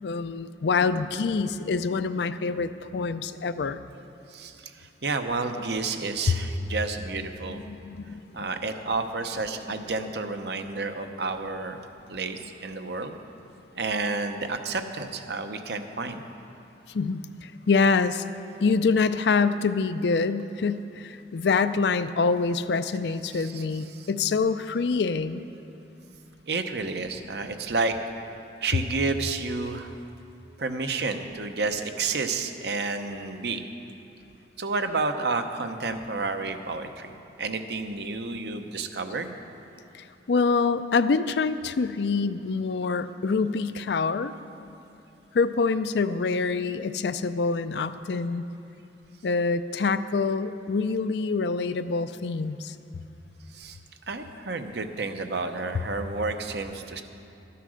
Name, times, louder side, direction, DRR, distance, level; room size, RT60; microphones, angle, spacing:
voice 1, 0.0-3.8 7.5-8.4 16.9-18.3 18.6-25.4 39.9-44.3 45.3-48.4 49.2-52.8, left 4 dB, 70° left, 12 dB, 0.4 m, -26 dB
voice 2, 4.3-7.6 8.3-11.8 12.1-13.1 13.7-16.2 23.3-23.6 23.9-24.1 26.5-28.0 28.6-29.9 30.6-33.6 34.6-37.1 37.4-39.4 53.5-53.8 54.1-57.0, right 3 dB, 65° right, 7 dB, 0.8 m, -30 dB
13.0 x 9.9 x 6.4 m, 2.7 s
head